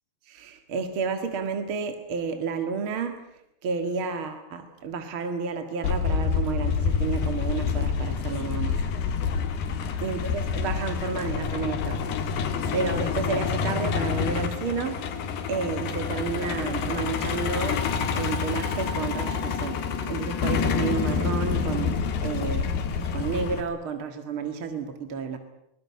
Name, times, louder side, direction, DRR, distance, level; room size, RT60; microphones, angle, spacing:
voice 1, 0.3-3.2 3.6-8.8 10.0-15.1 15.5-17.8 18.1-19.8 20.1-25.4, right 5 dB, 45° right, 7 dB, 1.9 m, -31 dB
Truck, 5.8-23.6, left 6 dB, 80° left, 4.0 m, -27 dB
23.0 x 19.5 x 9.6 m, 0.80 s
omnidirectional pair, 4.5 m